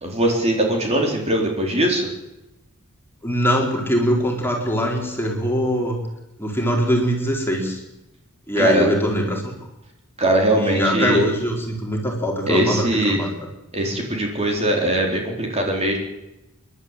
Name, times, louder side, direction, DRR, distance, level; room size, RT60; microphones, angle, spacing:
voice 1, 0.0-2.1 8.6-8.9 10.2-11.2 12.5-13.3 13.7-16.0, right 1 dB, 30° right, 1 dB, 4.0 m, -21 dB
voice 2, 3.2-6.0 6.4-7.8 8.5-9.5 10.5-13.3, equal, 10° left, 0 dB, 4.3 m, -22 dB
28.5 x 12.0 x 9.1 m, 0.95 s
head